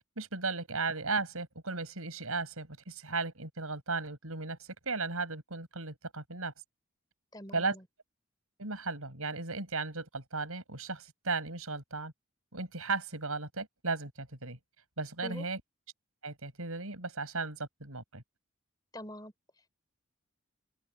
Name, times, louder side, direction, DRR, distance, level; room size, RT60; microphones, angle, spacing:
voice 1, 0.2-6.5 7.5-7.8 8.6-12.1 12.5-14.6 15.0-15.6 16.2-18.2, right 3 dB, 85° right, 7.3 m, -36 dB
voice 2, 7.3-7.8 15.2-15.5 18.9-19.3, left 1 dB, 20° left, 4.2 m, -44 dB
open air
head